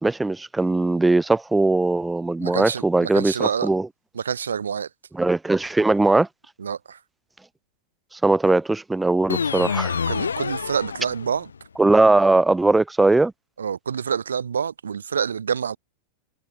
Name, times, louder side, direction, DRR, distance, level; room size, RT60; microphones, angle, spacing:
voice 1, 0.0-3.9 5.2-6.3 8.2-10.0 11.8-13.3, right 2 dB, 5° right, 4.7 m, -19 dB
voice 2, 2.4-3.7 4.1-4.9 6.6-7.0 10.1-11.5 13.6-15.8, right 7 dB, 70° right, 5.9 m, -27 dB
sound 1, 9.3-11.6, left 6 dB, 70° left, 1.4 m, -27 dB
figure-of-eight pair, 90°, 0 cm